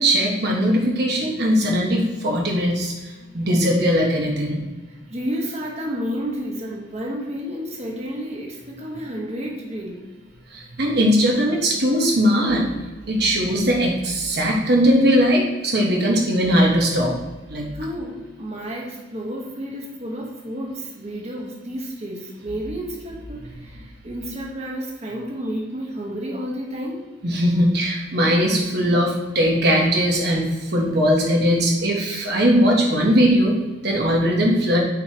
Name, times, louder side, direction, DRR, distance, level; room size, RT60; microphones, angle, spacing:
voice 1, 0.0-2.9 3.3-4.6 10.5-12.7 13.1-17.1 17.5-17.7 27.2-34.8, equal, 55° right, -1 dB, 1.0 m, -19 dB
voice 2, 5.1-10.0 17.7-27.0, equal, 35° right, -2 dB, 1.2 m, -31 dB
8.9 x 4.7 x 2.9 m, 1.3 s
head